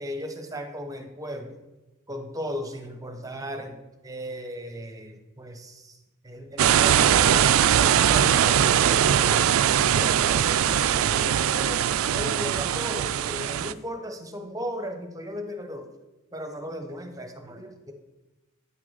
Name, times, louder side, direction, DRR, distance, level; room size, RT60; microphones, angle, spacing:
voice 1, 0.0-1.6 2.1-6.0 6.2-7.5 7.7-15.9 16.3-17.9, equal, 15° right, 6 dB, 0.9 m, -36 dB
sound 1, 6.6-13.7, right 9 dB, 70° right, 0.3 m, -21 dB
9.3 x 6.2 x 4.0 m, 1.1 s
head